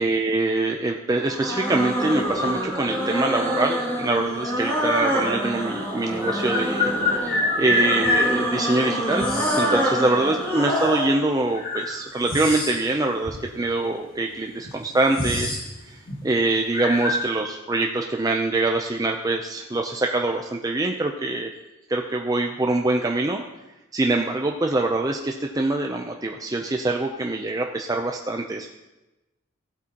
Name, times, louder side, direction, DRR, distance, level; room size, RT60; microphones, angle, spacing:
voice 1, 0.0-15.5 15.9-21.5 21.9-23.4 23.9-28.7, right 2 dB, 15° right, 2 dB, 0.5 m, -24 dB
sound 1, 1.2-11.2, equal, 10° left, 2.3 m, -26 dB
sound 2, 5.0-5.1 6.2-8.3 9.2-9.7 10.8-10.9 11.5-12.9 13.2-13.4 14.2-14.3 14.6-15.7 15.9-16.2 16.7-17.3, left 2 dB, 45° left, 2.0 m, -25 dB
15.5 x 8.2 x 2.9 m, 1.0 s
head